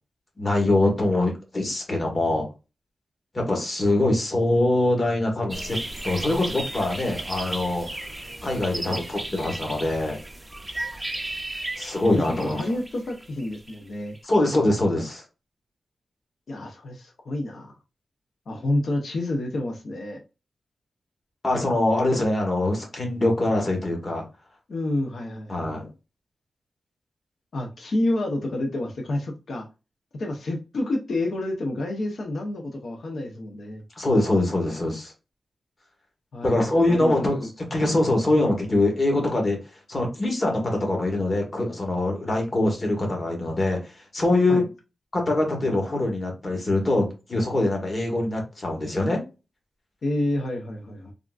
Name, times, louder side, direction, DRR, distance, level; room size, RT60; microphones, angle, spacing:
voice 1, 0.4-2.5 3.3-5.8 6.0-7.9 8.4-10.2 11.8-12.6 14.2-15.2 21.4-24.2 25.5-25.9 34.0-35.1 36.4-37.4 37.7-39.6 39.9-44.6 45.1-49.2, left 2 dB, 35° left, 1 dB, 1.1 m, -23 dB
sound 1, 5.5-14.2, right 1 dB, 15° right, 0.4 m, -35 dB
voice 2, 12.1-14.2 16.5-17.7 18.5-20.2 24.7-25.9 27.5-29.7 30.1-33.8 36.3-37.5 44.5-44.7 50.0-51.1, left 1 dB, 65° left, 2 dB, 0.6 m, -29 dB
3.5 x 2.4 x 2.3 m, 0.29 s
wide cardioid pair, 140°, 0 cm